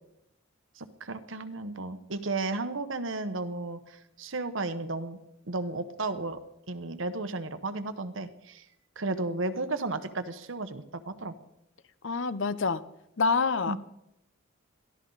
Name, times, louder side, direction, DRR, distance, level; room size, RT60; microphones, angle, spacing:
voice 1, 0.7-5.2 5.4-6.4 6.7-8.7 9.0-11.3 13.7-13.8, right 3 dB, 65° right, 10 dB, 1.1 m, -34 dB
voice 2, 12.0-12.8 13.2-13.8, left 4 dB, 65° left, 14 dB, 0.8 m, -26 dB
22.5 x 14.5 x 4.0 m, 0.82 s
head